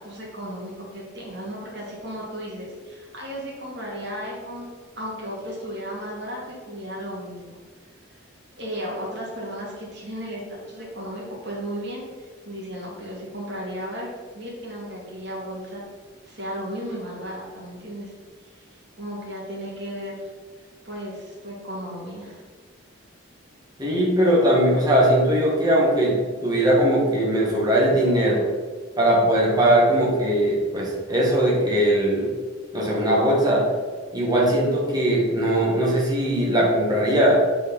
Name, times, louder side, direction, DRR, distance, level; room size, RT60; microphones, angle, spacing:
voice 1, 0.0-4.7 5.0-7.5 8.6-14.1 14.3-15.8 16.3-18.1 18.5-18.6 19.0-20.3 20.8-22.4, equal, 55° right, -4 dB, 2.5 m, -34 dB
voice 2, 23.8-26.2 26.4-28.4 29.0-32.3 32.7-33.6 34.1-37.4, right 1 dB, 20° right, -4 dB, 2.0 m, -20 dB
7.5 x 4.9 x 5.4 m, 1.5 s
head